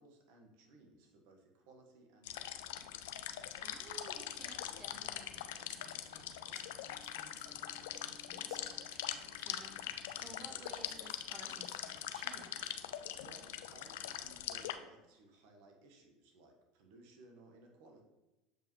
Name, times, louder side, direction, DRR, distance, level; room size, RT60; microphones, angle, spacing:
voice 1, 0.0-2.9 13.2-18.0, right 2 dB, 70° right, 1 dB, 1.3 m, -60 dB
sound 1, 2.3-14.7, left 11 dB, 75° left, 0.4 m, -43 dB
voice 2, 3.6-12.7, right 2 dB, 35° right, 2 dB, 1.5 m, -56 dB
sound 2, 6.8-13.2, left 3 dB, 40° left, 1.7 m, -66 dB
7.1 x 5.0 x 3.1 m, 1.0 s
hypercardioid pair, 80°, 0 cm